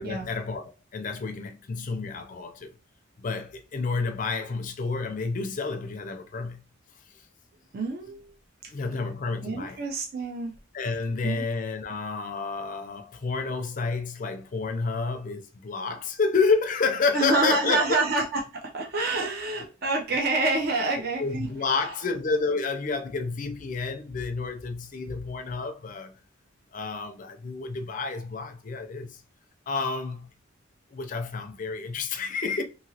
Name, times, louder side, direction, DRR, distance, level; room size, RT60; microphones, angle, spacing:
voice 1, 0.0-2.7 3.2-6.6 8.7-9.8 10.7-18.0 20.8-20.9 21.2-26.1 26.7-29.2 29.7-30.3 30.9-32.6, left 4 dB, 40° left, 0.4 m, -29 dB
voice 2, 7.7-8.3 8.9-9.0 9.4-10.5 11.2-11.4 17.1-21.5, right 2 dB, 50° right, 0.5 m, -27 dB
2.9 x 2.7 x 2.7 m
head